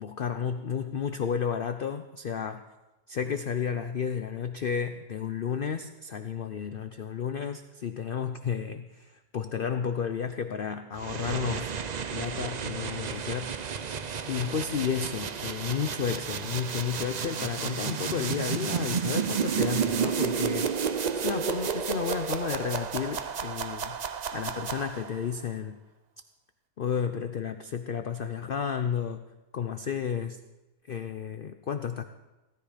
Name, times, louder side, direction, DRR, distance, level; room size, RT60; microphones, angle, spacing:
voice 1, 0.0-2.6 3.1-11.7 12.1-13.8 14.3-24.0 24.3-25.8 26.8-29.2 29.5-30.4 30.9-32.0, left 7 dB, 55° left, 9 dB, 0.6 m, -32 dB
sound 1, 11.0-25.3, right 6 dB, 90° right, 0.3 m, -31 dB
17.0 x 13.5 x 5.0 m, 1.1 s
omnidirectional pair, 1.6 m